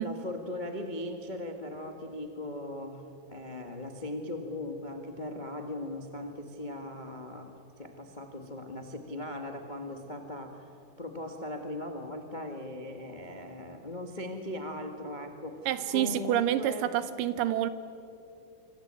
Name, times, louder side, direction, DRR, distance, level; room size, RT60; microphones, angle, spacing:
voice 1, 0.0-10.7 11.0-16.9, left 1 dB, 40° left, 0.6 m, -39 dB
voice 2, 15.7-17.7, right 11 dB, 75° right, 2.2 m, -28 dB
26.0 x 25.5 x 8.9 m
omnidirectional pair, 4.3 m